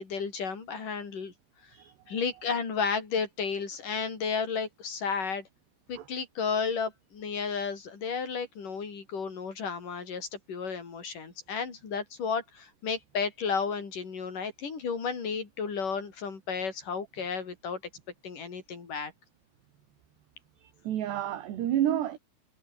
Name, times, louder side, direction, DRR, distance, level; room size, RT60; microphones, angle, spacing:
voice 1, 0.0-1.3 2.1-5.4 5.9-17.8 18.2-19.1, left 5 dB, 45° left, 6.1 m, -33 dB
voice 2, 1.7-2.2 6.0-6.1 20.6-22.2, right 11 dB, 65° right, 4.0 m, -30 dB
omnidirectional pair, 5.5 m